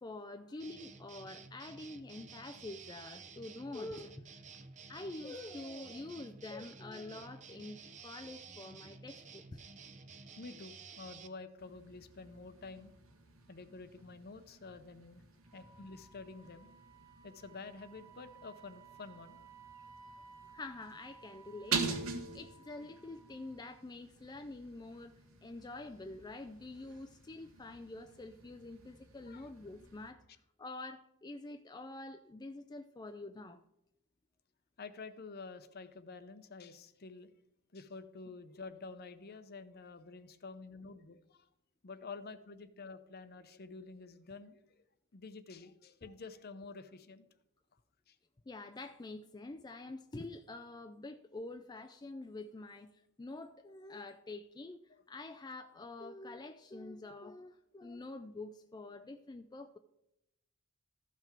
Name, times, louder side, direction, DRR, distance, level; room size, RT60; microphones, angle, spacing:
voice 1, 0.0-4.4 4.9-9.6 20.5-25.1 25.4-30.2 30.6-33.6 48.5-52.9 53.2-59.8, left 2 dB, 20° left, 8 dB, 0.4 m, -47 dB
sound 1, 0.6-11.3, right 5 dB, 35° right, 0.6 m, -52 dB
voice 2, 10.4-12.9 13.5-15.2 15.5-16.7 17.2-19.5 29.3-29.5 34.8-37.3 37.7-41.5 41.8-44.6 45.1-47.3 48.1-48.2, left 4 dB, 50° left, 12 dB, 0.7 m, -49 dB
sound 2, 11.6-30.1, right 5 dB, 80° right, 1.4 m, -46 dB
Wind instrument woodwind instrument, 15.5-23.7, right 6 dB, 15° right, 1.5 m, -58 dB
14.0 x 5.8 x 4.5 m, 0.84 s
head